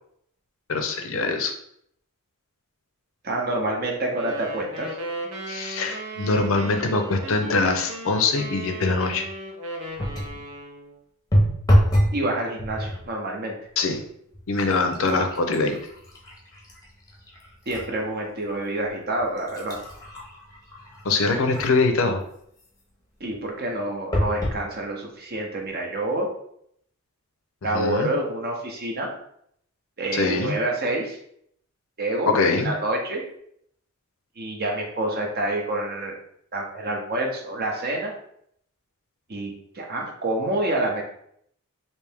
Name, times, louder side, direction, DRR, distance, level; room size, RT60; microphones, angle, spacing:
voice 1, 0.7-1.5 5.5-9.3 13.8-14.0 14.5-15.8 21.0-22.2 27.7-28.1 30.1-30.6 32.3-32.7, left 3 dB, 60° left, 6 dB, 0.5 m, -23 dB
voice 2, 3.2-5.0 12.1-13.6 17.7-19.8 23.2-26.3 27.6-29.2 30.0-31.2 32.0-32.3 32.6-33.2 34.4-36.2 36.5-38.1 39.3-41.0, right 1 dB, 45° right, 1 dB, 0.7 m, -27 dB
sound 1, 4.1-10.9, right 2 dB, 90° right, 0.9 m, -36 dB
sound 2, 10.0-10.4 11.3-12.2 12.6-13.1 13.8-14.0 14.3-17.9 18.4-18.5 19.2-21.9 24.1-24.6 25.3-25.4 25.7-25.8, equal, 15° left, 0.7 m, -26 dB
3.3 x 2.7 x 3.4 m, 0.70 s
head